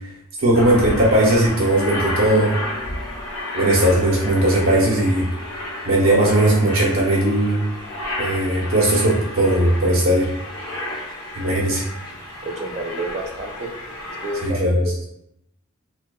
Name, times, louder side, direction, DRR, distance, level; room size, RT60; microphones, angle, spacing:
voice 1, 0.4-2.5 3.5-5.3 5.8-7.6 8.2-10.3 11.4-11.9 14.4-14.8, right 1 dB, 80° right, -4 dB, 0.8 m, -18 dB
Aircraft, 0.5-14.5, left 1 dB, 70° left, 0.7 m, -31 dB
voice 2, 12.1-13.7 14.2-14.9, right 2 dB, 35° right, 1 dB, 0.4 m, -30 dB
2.7 x 2.2 x 2.2 m, 0.80 s
head